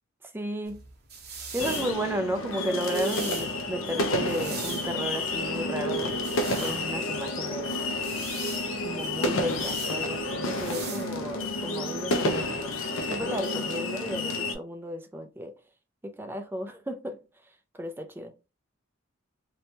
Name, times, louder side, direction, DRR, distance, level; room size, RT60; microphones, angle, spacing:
voice 1, 0.2-0.8 1.5-7.7 8.8-12.8 13.1-15.5 16.0-18.3, equal, 10° right, 0.3 m, -34 dB
sound 1, 0.6-11.6, right 5 dB, 55° right, 0.9 m, -42 dB
sound 2, 1.6-14.5, left 2 dB, 75° left, 0.5 m, -30 dB
2.9 x 2.2 x 2.7 m
head